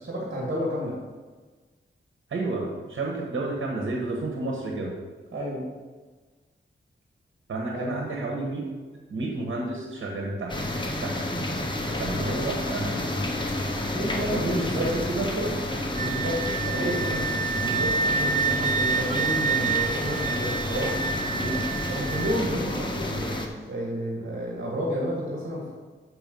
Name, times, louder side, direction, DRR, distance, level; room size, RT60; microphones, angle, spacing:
voice 1, 0.0-1.0 5.3-5.7 7.7-8.3 11.2-11.5 11.8-12.0 13.8-15.1 16.0-21.0 21.4-25.7, equal, 65° right, -4 dB, 2.3 m, -31 dB
voice 2, 2.3-4.9 7.5-8.7 9.1-10.6 11.0-11.2 12.0-13.1 13.8-15.6 16.8-17.0, right 2 dB, 90° right, 0 dB, 1.4 m, -31 dB
sound 1, 10.5-23.5, left 1 dB, 25° left, 1.0 m, -30 dB
Wind instrument woodwind instrument, 16.0-22.4, right 5 dB, 40° right, 0.4 m, -28 dB
6.9 x 6.1 x 5.4 m, 1.4 s
wide cardioid pair, 105°, 20 cm